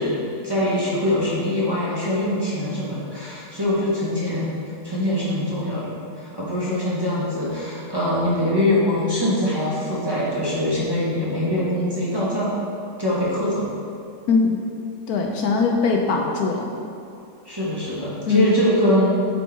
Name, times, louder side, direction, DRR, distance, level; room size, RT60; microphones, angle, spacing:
voice 1, 0.0-4.6 4.8-12.5 13.0-13.7 17.4-19.1, left 1 dB, 15° right, -8 dB, 1.1 m, -23 dB
voice 2, 14.3-14.6 15.1-16.8 18.3-18.6, left 4 dB, 70° left, 1 dB, 1.1 m, -21 dB
7.9 x 4.6 x 4.6 m, 2.4 s
omnidirectional pair, 1.8 m